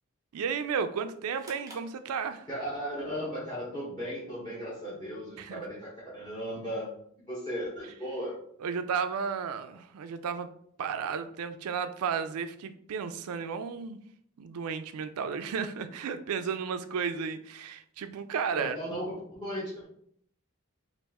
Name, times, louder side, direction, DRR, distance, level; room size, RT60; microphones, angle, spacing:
voice 1, 0.3-2.5 5.4-5.6 8.6-10.5 10.8-14.0 14.4-18.8, right 6 dB, 80° right, 10 dB, 0.4 m, -33 dB
sound 1, 1.4-2.8, right 2 dB, 15° right, 0.8 m, -52 dB
voice 2, 2.5-6.9 7.3-8.4 18.5-19.8, equal, 20° left, -7 dB, 1.1 m, -36 dB
4.0 x 2.5 x 3.5 m, 0.65 s
head